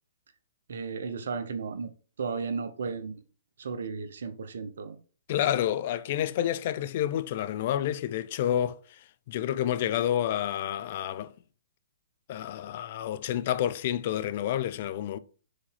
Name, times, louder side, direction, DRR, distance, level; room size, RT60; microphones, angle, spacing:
voice 1, 0.7-1.9 2.2-3.2 3.6-5.0, right 5 dB, 70° right, 0.8 m, -34 dB
voice 2, 5.3-11.3 12.3-15.2, left 11 dB, 50° left, 0.5 m, -29 dB
5.1 x 4.1 x 5.7 m
hypercardioid pair, 125°, 0 cm